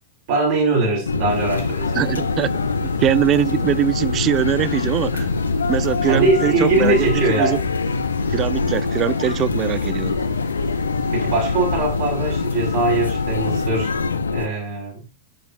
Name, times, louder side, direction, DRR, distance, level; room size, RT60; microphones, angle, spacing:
voice 1, 0.3-2.0 6.1-7.7 11.1-13.9 14.3-15.0, right 3 dB, 50° right, 5.7 m, -21 dB
sound 1, 1.1-14.5, left 4 dB, 75° left, 0.7 m, -24 dB
sound 2, 1.3-13.6, equal, 80° right, 3.9 m, -36 dB
voice 2, 1.9-5.3 5.7-7.6 8.3-10.2, right 12 dB, 30° right, 0.4 m, -22 dB
11.5 x 6.8 x 2.6 m
figure-of-eight pair, 95°, 0 cm